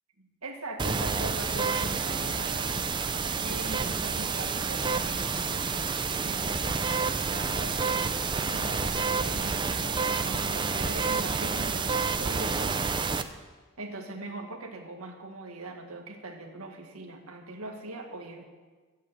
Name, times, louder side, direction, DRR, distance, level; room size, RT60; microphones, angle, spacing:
voice 1, 0.2-3.0 3.4-5.7 6.2-8.1 8.5-12.9 13.8-18.4, right 2 dB, 80° right, 2 dB, 1.9 m, -41 dB
sound 1, 0.8-13.2, right 5 dB, 20° right, 0.5 m, -29 dB
Wind instrument woodwind instrument, 8.4-12.1, equal, 40° right, 1.8 m, -44 dB
14.0 x 8.3 x 7.9 m, 1.4 s
head